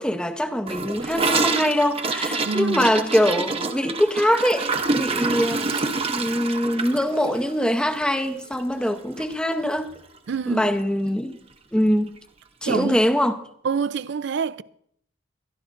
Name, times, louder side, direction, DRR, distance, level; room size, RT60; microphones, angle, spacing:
voice 1, 0.0-9.9 10.5-11.4 11.7-12.1 12.6-13.4, equal, 5° left, 0.7 m, -23 dB
Gurgling / Toilet flush, 0.7-8.9 9.2-9.3 9.6-10.0 10.3-10.4 10.7-10.8 11.8-11.9, right 3 dB, 30° right, 0.8 m, -27 dB
voice 2, 2.4-2.9 10.3-10.7 12.6-13.0 13.6-14.6, right 5 dB, 60° right, 0.4 m, -26 dB
23.0 x 12.0 x 2.5 m
head